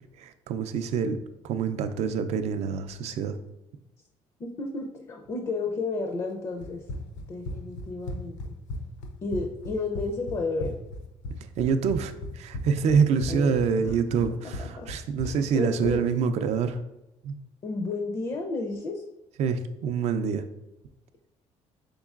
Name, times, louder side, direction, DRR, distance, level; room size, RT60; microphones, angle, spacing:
voice 1, 0.2-1.2 1.4-3.4 11.6-16.8 17.2-17.3 19.4-20.4, right 6 dB, 60° right, 9 dB, 0.4 m, -26 dB
voice 2, 4.4-6.8 7.3-8.4 9.2-10.8 13.3-13.9 14.6-14.9 15.2-16.0 17.6-19.0, left 3 dB, 30° left, 3 dB, 0.4 m, -32 dB
Run, 6.6-16.0, left 1 dB, 80° left, 0.6 m, -37 dB
5.2 x 3.8 x 2.4 m, 0.93 s
cardioid pair, 160°, 12 cm